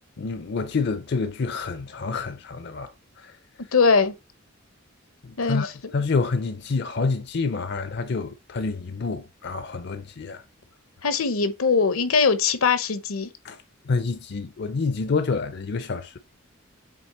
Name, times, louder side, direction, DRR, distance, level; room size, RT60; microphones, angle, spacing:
voice 1, 0.2-3.4 5.2-5.7 5.9-10.4 13.4-13.6 13.9-16.2, left 4 dB, 50° left, 0.5 m, -28 dB
voice 2, 3.7-4.1 5.4-5.9 11.0-13.3, left 5 dB, 80° left, 0.8 m, -21 dB
7.6 x 3.2 x 4.2 m
head